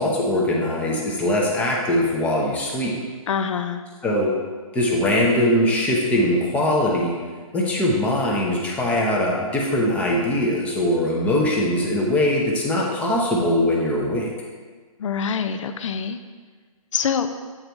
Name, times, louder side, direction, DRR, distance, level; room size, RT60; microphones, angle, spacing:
voice 1, 0.0-2.9 4.0-4.3 4.7-7.2 7.5-14.3, left 1 dB, 5° left, -2 dB, 0.7 m, -21 dB
voice 2, 3.3-3.8 15.0-16.2 16.9-17.3, left 7 dB, 60° left, 9 dB, 0.5 m, -25 dB
8.5 x 4.0 x 4.5 m, 1.5 s
hypercardioid pair, 155°, 18 cm